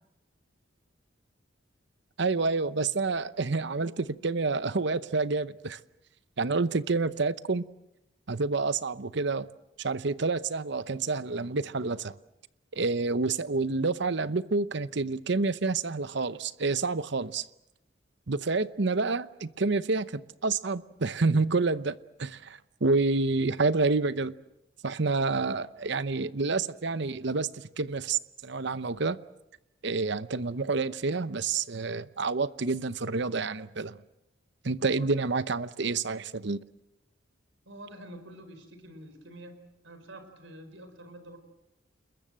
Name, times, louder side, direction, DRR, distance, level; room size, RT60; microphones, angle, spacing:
voice 1, 2.2-5.8 6.4-7.6 8.3-9.5 9.8-12.1 12.7-17.5 18.3-24.3 24.8-29.2 29.8-34.0 34.6-36.6, right 3 dB, 60° right, 0.8 m, -28 dB
voice 2, 34.8-35.2 37.6-39.6 39.8-41.4, right 1 dB, 80° right, 4.9 m, -47 dB
29.0 x 21.5 x 7.7 m
head